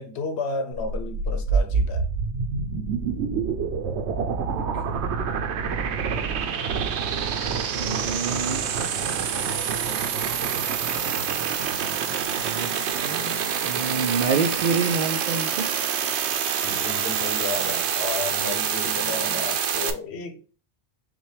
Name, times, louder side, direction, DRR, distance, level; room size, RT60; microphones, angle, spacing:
voice 1, 0.0-2.1 16.6-20.4, left 3 dB, 75° left, 1.1 m, -32 dB
sound 1, 0.7-19.9, right 7 dB, 90° right, 0.9 m, -26 dB
voice 2, 4.5-5.1 7.7-8.6 12.3-15.7, right 5 dB, 55° right, 0.5 m, -28 dB
5.9 x 2.3 x 3.1 m
omnidirectional pair, 1.1 m